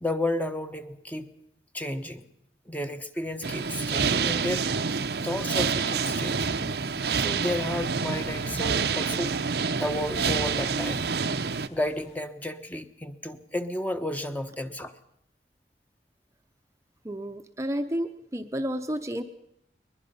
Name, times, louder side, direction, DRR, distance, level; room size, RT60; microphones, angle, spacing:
voice 1, 0.0-1.3 1.7-2.2 2.7-4.6 5.2-6.5 7.1-9.3 9.8-11.0 11.7-14.9, left 1 dB, 10° left, 8 dB, 1.0 m, -32 dB
sound 1, 3.2-12.2, equal, 40° left, 7.2 m, -45 dB
sound 2, 3.4-11.7, right 5 dB, 65° right, 0.7 m, -28 dB
voice 2, 17.0-19.2, equal, 15° right, 7 dB, 0.8 m, -31 dB
22.0 x 21.0 x 5.5 m, 0.75 s
head